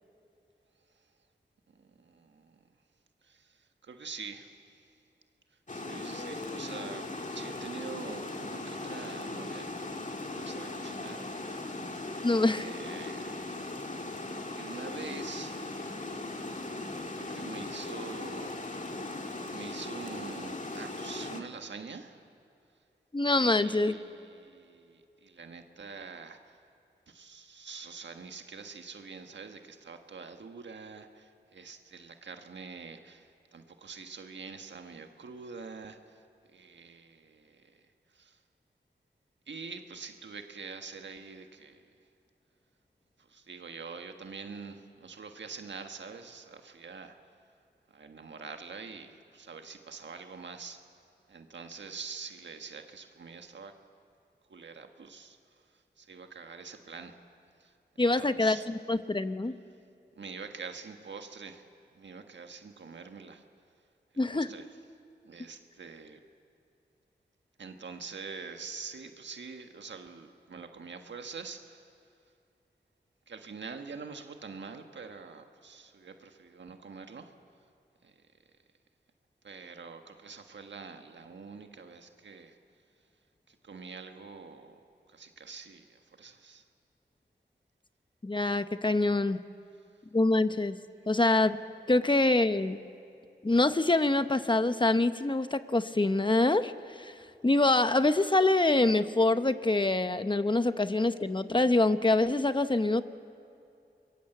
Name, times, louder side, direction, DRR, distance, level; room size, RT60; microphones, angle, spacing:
voice 1, 2.0-2.6 3.2-4.8 5.7-9.7 10.3-11.3 12.6-13.4 14.5-15.6 17.1-18.6 19.5-22.2 23.4-26.6 27.1-36.2 36.5-37.8 38.1-38.4 39.5-41.9 43.3-47.1 47.9-50.8 51.3-53.7 54.5-55.4 56.0-57.2 57.6-57.7 58.0-58.7 60.2-61.6 61.9-63.4 64.3-64.6 65.2-66.2 67.6-71.8 73.3-77.3 78.0-78.1 79.4-82.5 83.5-84.8 85.1-86.6, right 5 dB, 90° right, 5 dB, 1.5 m, -45 dB
Water, 5.7-21.4, left 2 dB, 45° left, 2.0 m, -38 dB
voice 2, 12.2-12.7 23.1-24.0 58.0-59.5 64.2-64.5 88.2-89.4 90.1-90.8 91.1-91.6 91.9-92.8 93.4-96.7 97.0-97.1 97.4-103.0, left 2 dB, 25° left, 11 dB, 1.0 m, -25 dB
25.5 x 22.5 x 8.0 m, 2.6 s
cardioid pair, 55°, 18 cm